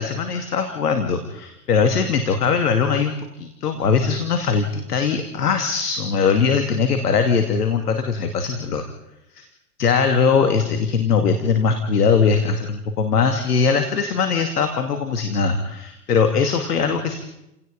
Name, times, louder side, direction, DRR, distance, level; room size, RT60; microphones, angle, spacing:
voice 1, 0.0-8.8 9.3-9.5 9.8-17.2, left 5 dB, 75° left, 7 dB, 2.5 m, -21 dB
29.5 x 18.0 x 5.3 m, 0.87 s
hypercardioid pair, 110°, 47 cm